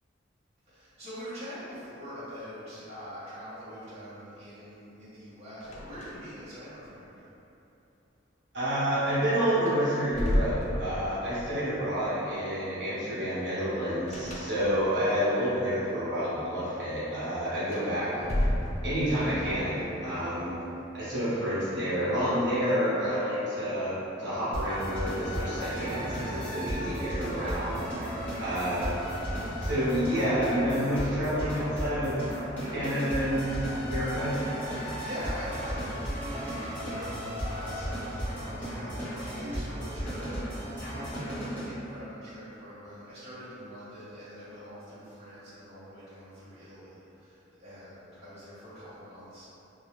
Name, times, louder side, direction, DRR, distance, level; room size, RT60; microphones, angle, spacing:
voice 1, 0.7-7.3 34.8-49.5, equal, 35° right, -14 dB, 0.9 m, -44 dB
sound 1, 5.6-6.4 6.7-6.8 9.1-9.2 9.6-11.3 14.1-15.0 17.6-19.2, left 1 dB, 35° left, 0.3 m, -31 dB
voice 2, 8.5-18.1 18.8-20.5 20.9-27.9 28.4-29.0 29.6-32.3 32.7-34.4, equal, 65° right, -12 dB, 0.9 m, -29 dB
sound 2, 19.1-21.0, left 2 dB, 65° left, 1.0 m, -48 dB
sound 3, 24.5-41.7, equal, 10° left, 0.8 m, -35 dB
2.4 x 2.3 x 3.0 m, 3.0 s
head